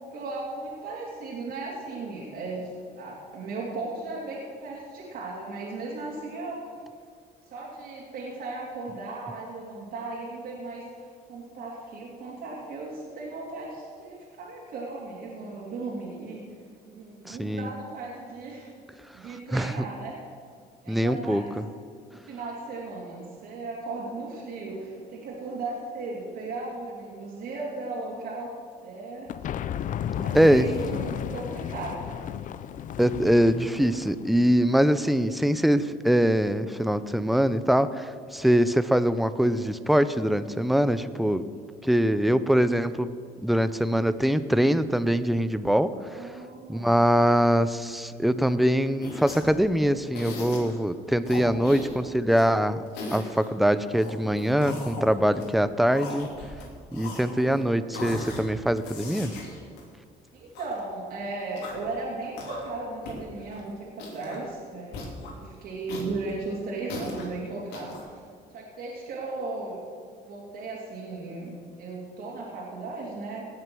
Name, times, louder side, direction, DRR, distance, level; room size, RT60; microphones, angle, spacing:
voice 1, 0.1-6.6 7.4-16.4 16.9-18.7 19.1-20.2 20.8-21.6 22.2-28.5 28.8-29.3 30.2-32.1 46.1-46.9 60.3-65.0 65.3-68.2 68.5-69.8 70.2-73.5, right 3 dB, 65° right, -5 dB, 2.7 m, -36 dB
voice 2, 17.3-17.7 19.5-19.7 20.9-21.4 30.3-30.7 33.0-41.5 41.8-43.1 43.4-46.2 46.7-52.8 53.1-56.3 56.9-59.3, equal, ahead, 13 dB, 0.5 m, -23 dB
sound 1, 29.3-34.3, left 9 dB, 50° left, 0.5 m, -33 dB
sound 2, 49.0-49.6 50.1-50.8 51.2-52.5 52.8-53.5 54.0-55.5 55.9-56.6 56.9-57.6 57.9-58.4 58.8-60.7 61.4-61.9 62.3-62.8 63.0-63.2 63.5-63.6 63.9-64.4 64.9-65.3 65.9-67.3 67.7-68.0, left 2 dB, 85° left, 3.0 m, -38 dB
18.0 x 6.6 x 6.2 m, 2.1 s
cardioid pair, 110°, 17 cm